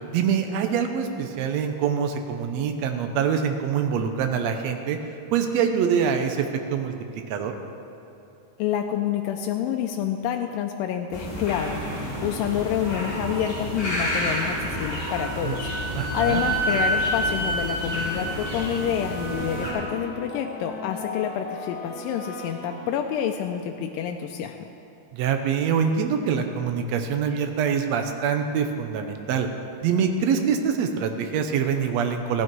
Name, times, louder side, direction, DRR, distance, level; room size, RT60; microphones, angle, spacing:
voice 1, 0.1-5.0 5.3-7.5 15.4-15.5 15.9-16.4 25.1-29.5 29.8-32.4, right 7 dB, 70° right, 6 dB, 1.7 m, -25 dB
voice 2, 8.6-24.6, left 9 dB, 90° left, 4 dB, 2.3 m, -28 dB
sound 1, 11.1-19.7, left 1 dB, 25° left, 3.2 m, -31 dB
Wind instrument woodwind instrument, 15.1-19.6, right 1 dB, 35° right, 2.8 m, -29 dB
sound 2, 18.3-23.5, left 1 dB, 60° left, 0.9 m, -37 dB
15.5 x 11.0 x 4.6 m, 2.7 s
omnidirectional pair, 3.8 m